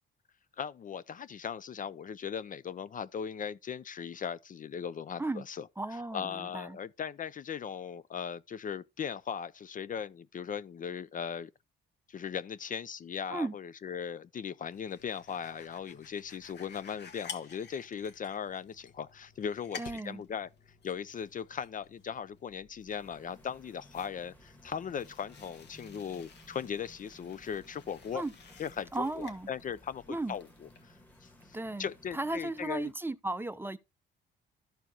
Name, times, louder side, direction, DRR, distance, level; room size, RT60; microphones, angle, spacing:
voice 1, 0.6-5.7 6.1-11.5 12.1-20.5 20.8-28.3 28.6-30.5 30.8-30.9 31.2-31.3 31.8-32.9, left 7 dB, 45° left, 0.5 m, -38 dB
voice 2, 5.8-6.8 13.3-13.6 19.8-20.2 28.1-28.3 28.9-29.5 30.1-30.4 31.5-33.8, right 2 dB, 10° right, 0.6 m, -35 dB
sound 1, 14.7-32.6, left 6 dB, 60° left, 1.5 m, -53 dB
sound 2, 22.9-32.9, equal, 10° left, 1.5 m, -59 dB
13.5 x 4.5 x 2.9 m
cardioid pair, 90°, 20 cm